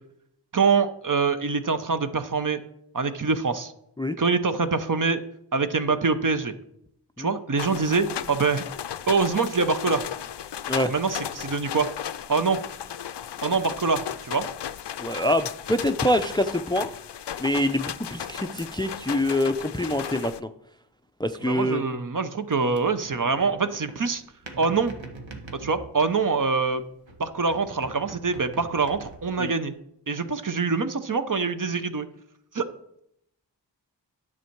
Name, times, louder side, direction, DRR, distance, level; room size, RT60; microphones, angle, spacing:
voice 1, 0.5-2.6 2.9-3.7 4.2-5.2 5.5-6.5 7.2-8.7 9.1-10.0 10.9-11.9 12.3-12.6 13.4-14.5 21.4-24.2 24.6-24.9 25.5-26.8 27.2-29.7 30.1-32.1 32.5-32.6, right 4 dB, 45° right, 10 dB, 0.8 m, -24 dB
sound 1, 7.6-20.4, left 9 dB, 70° left, 0.5 m, -35 dB
voice 2, 15.0-16.9 17.4-20.5 21.2-21.8 29.4-29.5, left 1 dB, 10° left, 10 dB, 0.4 m, -25 dB
sound 2, 22.5-26.7 27.1-29.5, right 3 dB, 90° right, 1.3 m, -43 dB
9.9 x 7.2 x 4.6 m, 0.76 s
wide cardioid pair, 55°, 44 cm